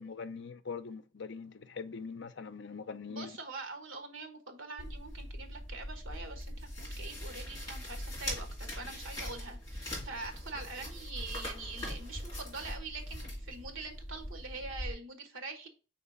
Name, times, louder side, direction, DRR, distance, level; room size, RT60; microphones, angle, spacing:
voice 1, 0.0-3.4, left 5 dB, 60° left, 0.6 m, -42 dB
voice 2, 3.1-15.7, right 3 dB, 80° right, 1.3 m, -44 dB
sound 1, 4.8-14.9, left 1 dB, 15° left, 2.7 m, -42 dB
Walk footsteps, 6.1-10.9 11.1-13.8, left 1 dB, 5° right, 1.3 m, -48 dB
4.3 x 4.1 x 5.6 m
head